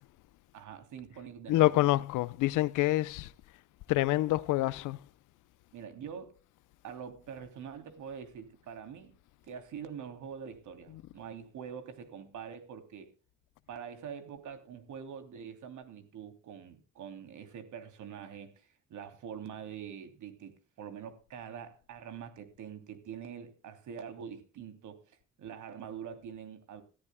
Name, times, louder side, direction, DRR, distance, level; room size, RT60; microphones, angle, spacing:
voice 1, 0.5-1.7 5.7-6.4 6.8-9.2 9.4-13.1 13.7-25.0 25.4-26.8, right 7 dB, 75° right, 3.0 m, -45 dB
voice 2, 1.5-3.3 3.9-5.0, left 17 dB, 85° left, 0.6 m, -27 dB
20.5 x 13.5 x 2.2 m
cardioid pair, 90°, 30 cm